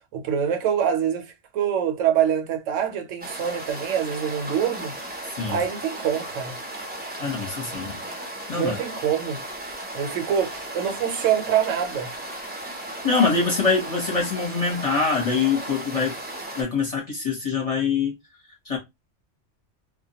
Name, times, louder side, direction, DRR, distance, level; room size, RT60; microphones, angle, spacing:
voice 1, 0.1-4.9 5.5-6.6 8.5-9.4 9.9-12.1, right 8 dB, 80° right, 0.9 m, -25 dB
sound 1, 3.2-16.6, right 1 dB, 15° right, 0.3 m, -36 dB
voice 2, 7.2-8.0 8.5-8.7 13.0-16.2 16.6-18.1 18.7-18.8, left 4 dB, 35° left, 0.7 m, -24 dB
2.2 x 2.1 x 2.7 m
omnidirectional pair, 1.3 m